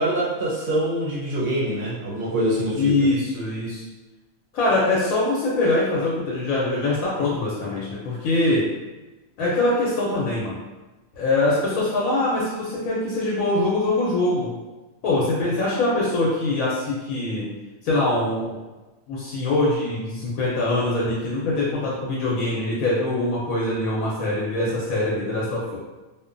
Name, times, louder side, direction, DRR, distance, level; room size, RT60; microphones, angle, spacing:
voice 1, 0.0-3.1, right 1 dB, 60° right, -5 dB, 0.6 m, -24 dB
voice 2, 2.8-3.8 4.5-8.7 9.4-10.6 11.2-14.5 15.0-17.5 17.8-18.6 19.1-25.8, left 2 dB, 85° left, -5 dB, 1.1 m, -23 dB
2.7 x 2.1 x 2.5 m, 1.1 s
omnidirectional pair, 1.5 m